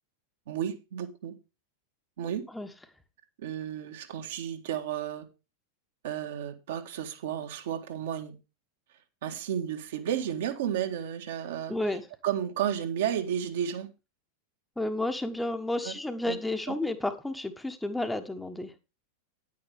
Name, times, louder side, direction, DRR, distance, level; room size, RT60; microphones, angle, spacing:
voice 1, 0.5-1.3 2.2-2.5 3.4-5.3 6.0-8.4 9.2-11.8 12.2-13.9 15.8-15.9 16.2-16.4 16.7-16.8, right 9 dB, 55° right, 1.7 m, -32 dB
voice 2, 11.7-12.1 14.8-18.7, left 2 dB, 5° left, 1.2 m, -31 dB
10.5 x 9.4 x 3.5 m
figure-of-eight pair, 90°, 0 cm